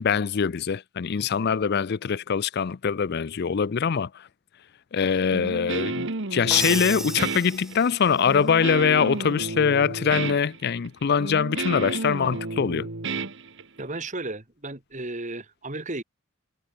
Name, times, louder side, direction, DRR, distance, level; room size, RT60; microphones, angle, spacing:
voice 1, 0.0-4.3 4.9-12.9, left 6 dB, 50° left, 0.4 m, -23 dB
Guitar, 5.3-14.0, right 3 dB, 55° right, 1.6 m, -32 dB
Crash cymbal, 6.5-8.2, right 1 dB, ahead, 1.2 m, -32 dB
voice 2, 13.8-16.0, right 2 dB, 35° right, 2.2 m, -34 dB
head